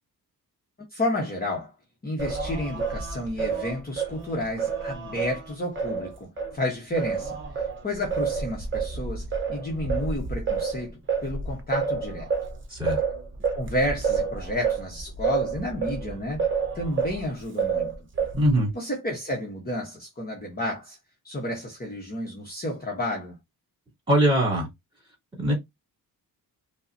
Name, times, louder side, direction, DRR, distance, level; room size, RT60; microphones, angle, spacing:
voice 1, 0.9-1.7 2.0-12.3 13.5-16.5 16.7-17.9 18.7-21.0 21.2-23.4, left 1 dB, 25° left, 0.9 m, -31 dB
Singing, 2.2-6.6 7.0-17.2 17.6-18.6, right 5 dB, 35° right, 0.8 m, -29 dB
voice 2, 12.7-13.0 18.3-18.7 24.1-24.7 25.4-25.5, equal, 15° right, 2.5 m, -21 dB
5.4 x 2.1 x 2.5 m
wide cardioid pair, 155°, 37 cm